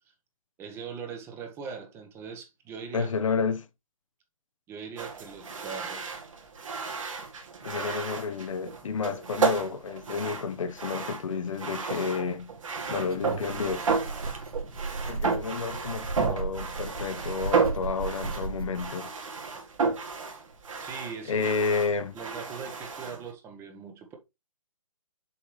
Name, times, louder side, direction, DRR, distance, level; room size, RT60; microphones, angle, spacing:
voice 1, 0.6-3.1 4.7-6.1 20.8-21.5 22.1-24.2, right 6 dB, 15° right, 1.0 m, -40 dB
voice 2, 2.9-3.6 7.6-12.5 12.9-13.9 15.1-19.1 21.3-22.1, left 5 dB, 60° left, 0.9 m, -30 dB
sound 1, 5.0-23.3, right 5 dB, 65° right, 2.4 m, -33 dB
sound 2, 12.8-18.9, right 3 dB, 80° right, 2.1 m, -36 dB
7.1 x 4.7 x 3.2 m
hypercardioid pair, 150°, 18 cm